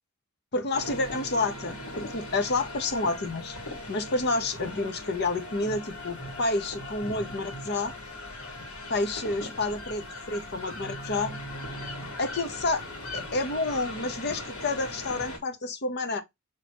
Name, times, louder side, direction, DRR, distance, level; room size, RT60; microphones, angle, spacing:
voice 1, 0.5-3.6 3.9-7.9 8.9-11.3 12.2-12.8 13.1-16.2, left 2 dB, 50° left, 0.9 m, -29 dB
sound 1, 0.7-15.4, left 1 dB, 80° left, 1.8 m, -39 dB
6.2 x 3.0 x 2.9 m
head